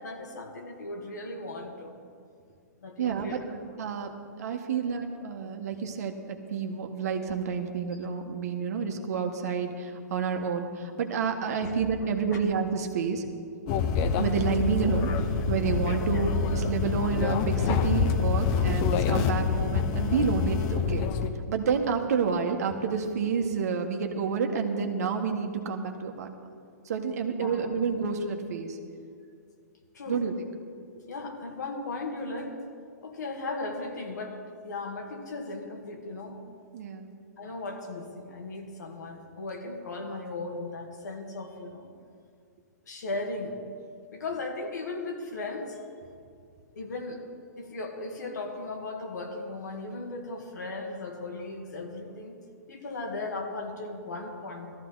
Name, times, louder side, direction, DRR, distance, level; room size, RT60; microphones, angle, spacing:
voice 1, 0.0-1.9 2.8-3.5 4.7-4.8 11.6-11.8 12.3-12.4 16.1-16.2 27.4-27.7 29.9-30.2 31.1-32.6 33.0-36.4 37.4-41.9 42.9-43.6 44.1-45.8 46.8-47.2 47.6-52.3 52.7-54.7, left 2 dB, 80° left, 2 dB, 2.3 m, -37 dB
voice 2, 3.0-3.4 3.8-13.3 14.2-15.1 15.5-21.0 21.5-26.3 26.8-28.8 30.1-30.5 36.7-37.1, right 6 dB, 65° right, 4 dB, 1.4 m, -29 dB
sound 1, 13.7-21.3, left 5 dB, 35° left, 0.9 m, -26 dB
17.0 x 14.0 x 4.0 m, 2.3 s
hypercardioid pair, 125°, 9 cm